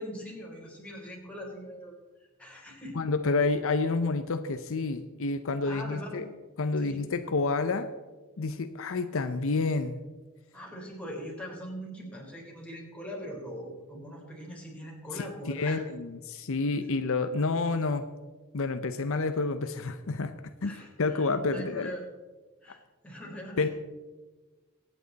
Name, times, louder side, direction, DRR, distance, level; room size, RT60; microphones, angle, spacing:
voice 1, 0.0-1.9 2.4-3.0 5.6-6.2 6.8-7.3 10.5-15.8 20.6-22.0 22.6-23.7, equal, 5° left, -3 dB, 3.9 m, -41 dB
voice 2, 3.0-6.3 6.6-7.9 8.4-10.0 15.1-18.0 18.5-20.3 20.6-21.9 23.6-23.7, left 3 dB, 65° left, 9 dB, 0.7 m, -29 dB
23.5 x 9.0 x 4.0 m, 1.3 s
head